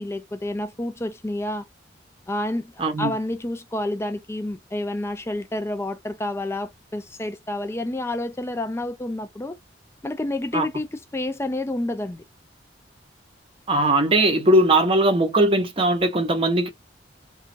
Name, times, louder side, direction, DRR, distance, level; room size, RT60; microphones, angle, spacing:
voice 1, 0.0-1.7 2.3-2.7 3.0-9.6 10.0-12.2, left 1 dB, 15° left, 0.4 m, -29 dB
voice 2, 2.8-3.1 10.5-10.7 13.7-16.7, right 1 dB, 30° right, 0.7 m, -19 dB
3.1 x 2.2 x 2.7 m
head